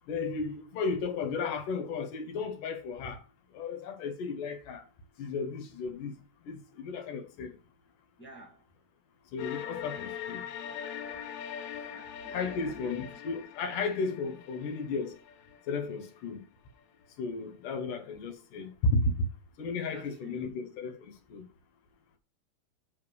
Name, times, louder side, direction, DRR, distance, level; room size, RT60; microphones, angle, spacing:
voice 1, 0.1-3.2 3.5-4.9 5.2-6.2 6.4-7.5 9.3-10.4 12.3-15.2 15.7-16.4 17.2-19.3 19.6-21.4, left 3 dB, 65° left, 2.8 m, -34 dB
voice 2, 8.2-8.7 11.9-13.1 19.9-20.5, right 1 dB, 5° left, 1.0 m, -51 dB
sound 1, 9.4-16.3, left 9 dB, 85° left, 2.8 m, -42 dB
8.3 x 4.9 x 6.4 m
omnidirectional pair, 4.4 m